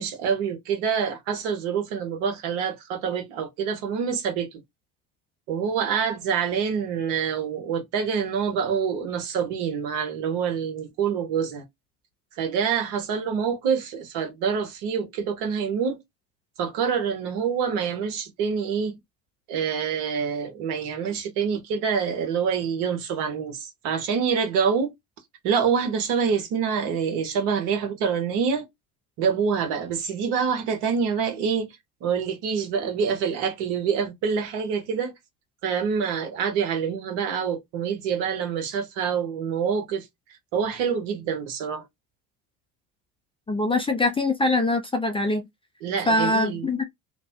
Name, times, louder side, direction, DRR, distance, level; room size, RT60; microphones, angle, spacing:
voice 1, 0.0-4.6 5.5-11.6 12.4-16.0 16.6-19.0 19.5-24.9 25.4-28.7 29.2-31.7 32.0-35.1 35.6-40.1 40.5-41.8 45.8-46.7, right 6 dB, 65° right, 1.3 m, -26 dB
voice 2, 43.5-45.5 46.1-46.8, left 2 dB, 10° left, 0.6 m, -23 dB
2.9 x 2.2 x 2.7 m
hypercardioid pair, 75°, 44 cm